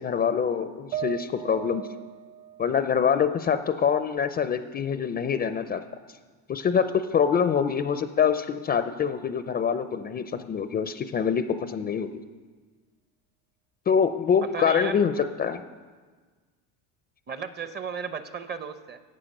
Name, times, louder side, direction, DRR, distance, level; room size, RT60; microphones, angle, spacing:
voice 1, 0.0-1.9 2.6-5.8 6.5-12.1 13.9-15.6, left 7 dB, 25° left, 10 dB, 0.5 m, -25 dB
sound 1, 0.9-4.3 4.7-5.7, right 11 dB, 45° right, 1.2 m, -40 dB
voice 2, 14.5-15.0 17.3-19.0, right 6 dB, 25° right, 12 dB, 0.7 m, -35 dB
14.0 x 8.7 x 6.5 m, 1.5 s
supercardioid pair, 125°, 41 cm